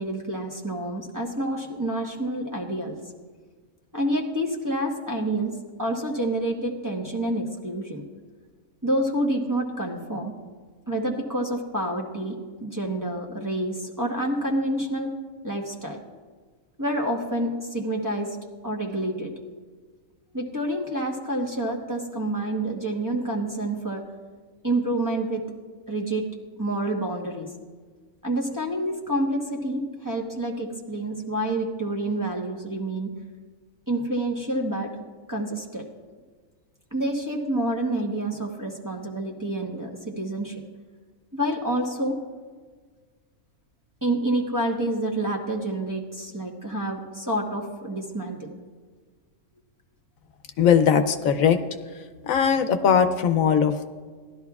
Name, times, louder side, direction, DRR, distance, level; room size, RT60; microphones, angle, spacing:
voice 1, 0.0-3.0 3.9-8.0 8.8-10.3 10.9-15.1 15.4-16.0 16.8-18.4 18.6-19.3 20.3-24.0 24.6-25.5 25.9-26.3 26.6-27.5 28.2-33.1 33.9-34.9 35.3-35.9 36.9-40.6 41.3-42.2 44.0-48.5, right 1 dB, 15° right, -2 dB, 1.0 m, -28 dB
voice 2, 50.6-51.6 52.3-53.9, left 7 dB, 80° left, 8 dB, 1.1 m, -20 dB
17.5 x 12.0 x 2.4 m, 1.5 s
omnidirectional pair, 1.4 m